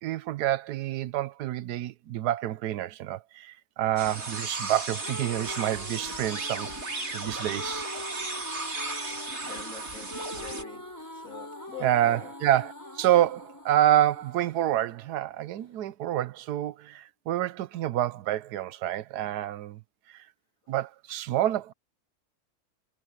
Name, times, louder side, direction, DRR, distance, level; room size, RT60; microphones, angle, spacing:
voice 1, 0.0-7.9 11.8-19.8 20.1-20.2 20.7-21.7, right 13 dB, 90° right, 1.3 m, -28 dB
sound 1, 4.0-10.6, right 3 dB, 45° right, 3.3 m, -35 dB
sound 2, 4.7-15.7, left 1 dB, 10° left, 4.9 m, -44 dB
voice 2, 9.4-10.8 11.1-12.3, left 5 dB, 60° left, 3.8 m, -44 dB
omnidirectional pair, 1.7 m